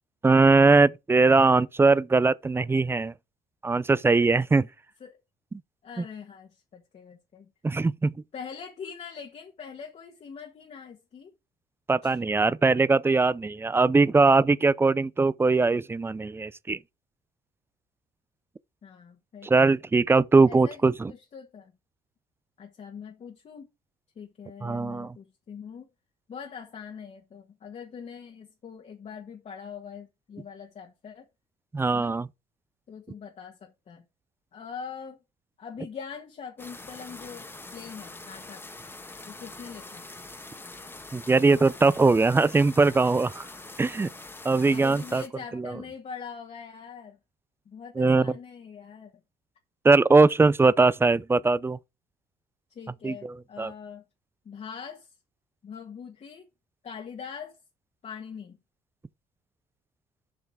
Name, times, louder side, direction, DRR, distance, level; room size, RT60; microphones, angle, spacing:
voice 1, 0.2-3.1 3.6-4.7 7.6-8.1 11.9-16.8 19.4-21.1 24.6-25.1 31.7-32.3 41.1-43.4 43.8-44.1 44.4-45.2 45.5-45.7 48.0-48.3 49.8-51.8 53.0-53.7, right 3 dB, 15° right, 0.4 m, -21 dB
voice 2, 5.8-7.5 8.3-11.3 12.0-12.2 18.8-19.5 20.5-20.8 21.1-21.7 22.6-23.7 24.1-25.9 26.3-31.2 31.9-32.2 32.9-34.0 34.5-35.2 35.6-38.6 39.3-40.1 44.7-47.2 47.6-49.1 52.7-54.0 54.4-55.1 55.6-56.5 56.8-57.5 58.0-58.6, left 6 dB, 40° left, 1.7 m, -42 dB
sound 1, 36.6-45.3, left 2 dB, 10° left, 1.4 m, -44 dB
7.4 x 5.8 x 4.7 m
cardioid pair, 110°, 17 cm